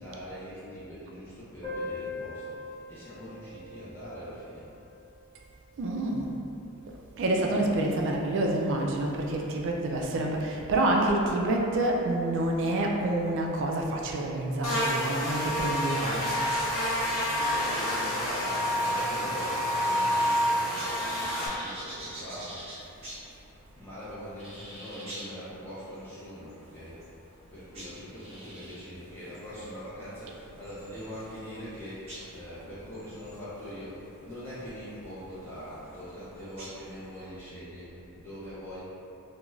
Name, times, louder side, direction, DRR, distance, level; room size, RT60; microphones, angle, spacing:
voice 1, 0.0-4.7 17.2-22.7 23.7-27.0 27.5-38.8, equal, 10° left, -12 dB, 0.5 m, -42 dB
Piano, 1.6-7.0 7.2-7.3 7.6-7.7 8.0-8.1 8.9-9.1, left 2 dB, 30° left, 1.3 m, -42 dB
voice 2, 5.8-6.3 7.2-16.4 32.7-32.8, right 1 dB, 55° right, 0 dB, 0.3 m, -28 dB
Buzz, 14.6-21.5, equal, 75° left, 0.6 m, -28 dB
sound 1, 20.3-37.3, right 1 dB, 25° right, 0.7 m, -48 dB
2.4 x 2.2 x 3.0 m, 2.7 s
head